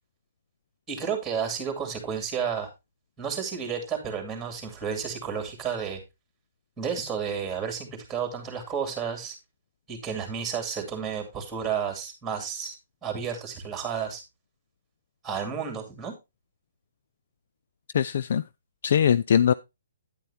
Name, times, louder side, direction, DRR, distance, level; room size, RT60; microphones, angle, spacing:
voice 1, 0.9-2.7 3.2-6.0 6.8-9.4 9.9-12.7 13.0-14.2 15.2-16.1, right 7 dB, 5° right, 2.5 m, -31 dB
voice 2, 17.9-18.4 18.8-19.5, left 8 dB, 55° left, 0.4 m, -21 dB
9.5 x 9.0 x 2.8 m
hypercardioid pair, 160°, 0 cm